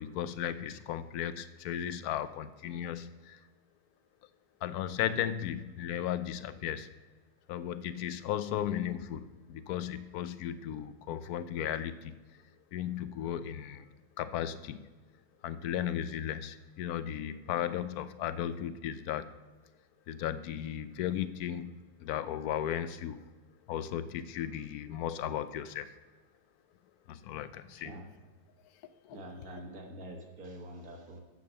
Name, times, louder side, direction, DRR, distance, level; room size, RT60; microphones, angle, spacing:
voice 1, 0.0-3.4 4.6-6.9 7.5-12.2 12.7-13.9 14.2-14.9 15.4-19.3 20.1-23.2 23.7-25.9 27.1-27.9 28.8-29.2, left 10 dB, 75° left, 13 dB, 1.0 m, -35 dB
voice 2, 27.7-28.0 29.1-31.2, right 1 dB, 60° right, 1 dB, 1.8 m, -46 dB
8.5 x 6.8 x 6.8 m, 1.2 s
omnidirectional pair, 1.8 m